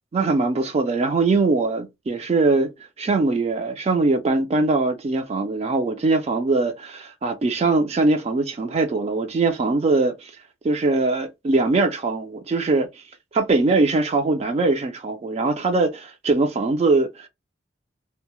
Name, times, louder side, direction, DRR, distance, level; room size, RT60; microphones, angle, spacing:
voice 1, 0.1-2.7 3.0-10.3 10.6-13.0 13.3-17.3, right 3 dB, 35° right, 0.3 m, -21 dB
2.2 x 2.0 x 2.9 m
head